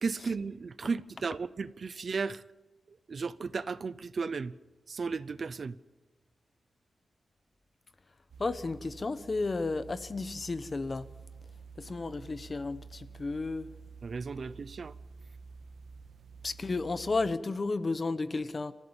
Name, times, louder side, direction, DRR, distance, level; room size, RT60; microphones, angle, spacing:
voice 1, 0.0-2.4 2.9-4.5 4.9-5.8 14.0-14.9, right 4 dB, 45° right, 0.7 m, -35 dB
sound 1, 8.3-17.3, right 5 dB, 85° right, 1.8 m, -50 dB
voice 2, 8.4-11.1 11.8-13.7 16.4-18.7, left 3 dB, 30° left, 0.9 m, -33 dB
27.5 x 15.0 x 7.2 m
wide cardioid pair, 160°, 0 cm